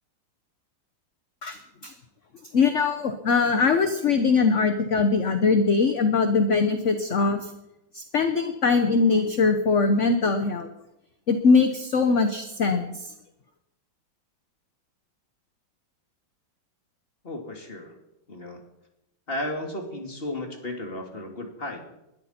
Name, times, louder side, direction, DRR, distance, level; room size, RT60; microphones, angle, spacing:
voice 1, 1.4-1.9 2.5-7.5 7.9-10.7 11.3-13.1, left 4 dB, 45° left, 7 dB, 1.0 m, -22 dB
voice 2, 17.2-18.0 18.3-18.6 19.3-21.8, left 1 dB, 25° left, 2 dB, 2.7 m, -34 dB
21.0 x 13.0 x 4.4 m, 0.88 s
omnidirectional pair, 2.2 m